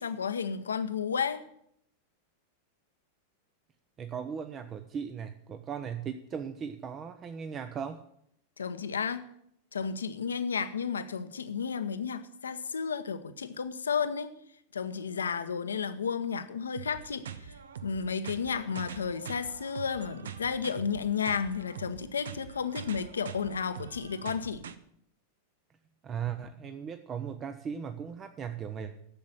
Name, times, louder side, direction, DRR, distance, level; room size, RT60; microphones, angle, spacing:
voice 1, 0.0-1.4 8.6-9.2 9.7-14.3 14.7-17.2 17.8-24.6, left 6 dB, 70° left, 11 dB, 0.9 m, -32 dB
voice 2, 4.0-8.0 26.0-29.0, right 7 dB, 25° right, 8 dB, 0.8 m, -37 dB
sound 1, 16.8-24.8, right 7 dB, 65° right, 0.8 m, -44 dB
11.5 x 7.6 x 8.3 m, 0.71 s
figure-of-eight pair, 90°, 0 cm